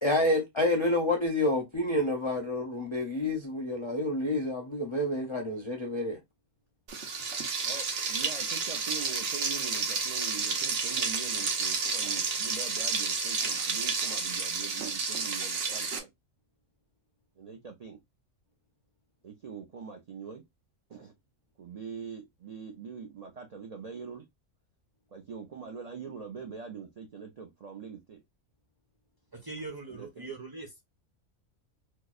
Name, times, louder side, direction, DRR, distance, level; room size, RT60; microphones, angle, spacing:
voice 1, 0.0-6.2, left 1 dB, 45° left, 0.4 m, -28 dB
Frying (food), 6.9-16.0, right 4 dB, 55° right, 0.9 m, -31 dB
voice 2, 7.6-16.1 17.4-18.0 19.2-20.4 20.9-21.1 21.6-24.3 25.1-28.2 29.9-30.3, right 6 dB, 70° right, 0.3 m, -43 dB
voice 3, 29.3-30.8, right 3 dB, 25° right, 0.5 m, -41 dB
4.5 x 2.0 x 2.3 m
omnidirectional pair, 1.4 m